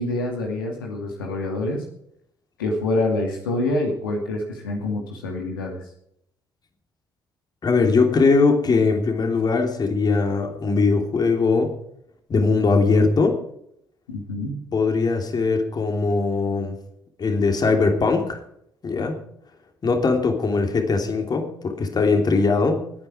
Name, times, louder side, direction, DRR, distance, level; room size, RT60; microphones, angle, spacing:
voice 1, 0.0-1.8 2.6-5.8 14.1-14.6, left 2 dB, 75° left, 1 dB, 2.5 m, -26 dB
voice 2, 7.6-11.7 12.3-13.4 14.7-16.8 17.2-18.4 18.8-19.2 19.8-22.8, left 4 dB, 35° left, 5 dB, 3.0 m, -20 dB
20.5 x 9.3 x 4.8 m, 0.72 s
figure-of-eight pair, 45°, 11 cm